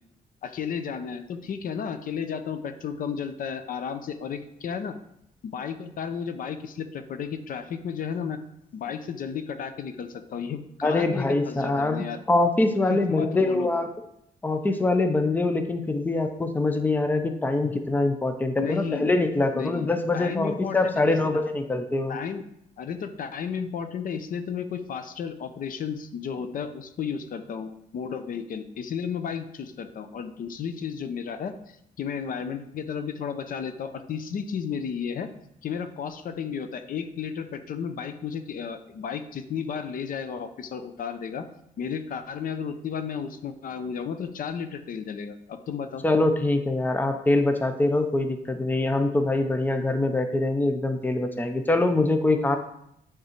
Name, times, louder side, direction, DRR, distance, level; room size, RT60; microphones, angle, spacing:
voice 1, 0.4-5.0 5.4-8.4 8.7-12.2 12.9-13.7 18.6-19.1 19.5-21.2 22.1-22.4 22.8-35.3 35.6-41.5 41.8-46.0, left 7 dB, 65° left, 9 dB, 0.6 m, -33 dB
voice 2, 10.8-13.9 14.4-22.2 46.0-52.6, left 2 dB, 10° left, 6 dB, 0.6 m, -24 dB
9.4 x 3.7 x 4.4 m, 0.75 s
wide cardioid pair, 135°, 15 cm